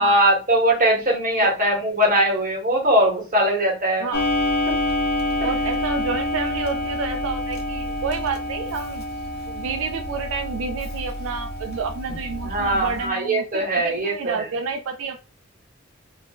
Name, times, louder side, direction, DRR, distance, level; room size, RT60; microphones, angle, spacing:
voice 1, 0.0-4.1 5.4-5.5 12.4-14.4, right 1 dB, 40° right, -1 dB, 1.2 m, -20 dB
Clock, 4.1-13.1, left 1 dB, 50° left, 0.5 m, -27 dB
voice 2, 5.4-9.0 9.5-15.2, right 5 dB, 70° right, 6 dB, 0.3 m, -29 dB
2.6 x 2.1 x 3.5 m, 0.32 s
head